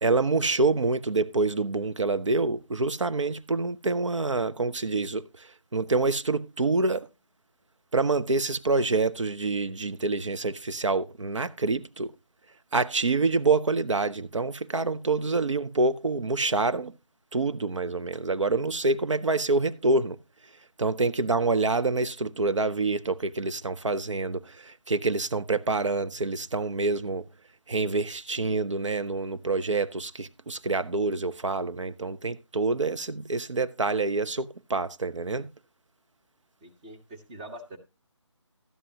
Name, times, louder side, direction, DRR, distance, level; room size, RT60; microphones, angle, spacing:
voice 1, 0.0-7.1 7.9-12.1 12.7-16.9 17.3-20.2 20.8-27.2 27.7-35.5, right 3 dB, 75° right, 0.6 m, -27 dB
voice 2, 36.6-37.8, right 1 dB, 15° right, 0.9 m, -44 dB
12.5 x 9.9 x 2.8 m
figure-of-eight pair, 160°, 16 cm